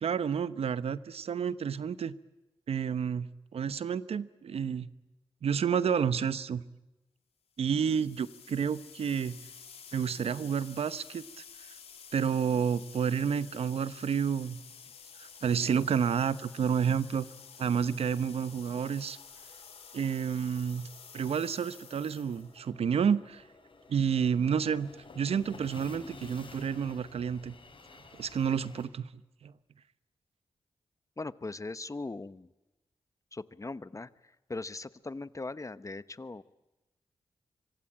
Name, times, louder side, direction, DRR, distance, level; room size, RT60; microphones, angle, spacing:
voice 1, 0.0-2.1 2.7-4.9 5.4-6.6 7.6-9.4 9.9-11.4 12.1-14.6 15.2-17.3 17.6-19.2 19.9-20.9 21.1-23.4 23.9-24.9 25.1-27.5 28.2-29.1 29.4-29.5, right 7 dB, 80° right, 15 dB, 1.0 m, -30 dB
sound 1, 7.6-22.6, left 7 dB, 85° left, 3.3 m, -51 dB
sound 2, 12.7-28.9, left 3 dB, 60° left, 7.2 m, -54 dB
voice 2, 31.2-32.5 33.3-36.4, left 3 dB, 30° left, 15 dB, 1.0 m, -40 dB
25.0 x 24.5 x 8.9 m, 1.0 s
cardioid pair, 55°, 10 cm